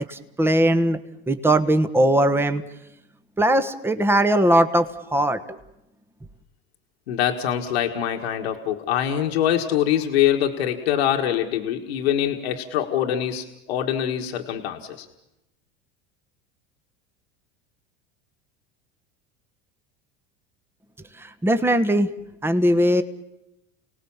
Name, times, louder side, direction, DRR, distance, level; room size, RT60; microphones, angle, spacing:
voice 1, 0.1-1.0 1.3-2.6 3.4-5.6 21.2-22.1 22.4-23.0, right 1 dB, 10° right, 10 dB, 1.3 m, -20 dB
voice 2, 7.1-15.1, left 10 dB, 90° left, 3 dB, 1.7 m, -24 dB
29.5 x 18.5 x 7.2 m, 0.89 s
supercardioid pair, 105°, 31 cm